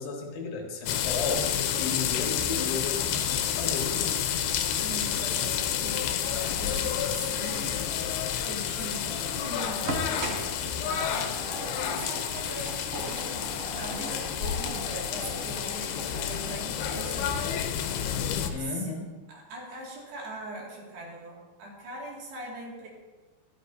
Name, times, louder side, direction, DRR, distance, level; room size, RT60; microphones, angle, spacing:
voice 1, 0.0-4.3 18.5-19.1, left 4 dB, 70° left, 1 dB, 3.0 m, -34 dB
sound 1, 0.9-18.5, left 9 dB, 85° left, 2.7 m, -30 dB
voice 2, 4.8-7.8 8.4-13.4 13.7-17.3 18.6-18.9 19.3-22.9, right 2 dB, 85° right, -3 dB, 4.3 m, -41 dB
sound 2, 6.3-8.8 9.7-12.0 12.5-18.1, left 1 dB, 45° left, 3.5 m, -44 dB
sound 3, 8.8-14.9, right 2 dB, 55° right, 1.5 m, -40 dB
12.5 x 12.5 x 2.7 m, 1.2 s
omnidirectional pair, 4.6 m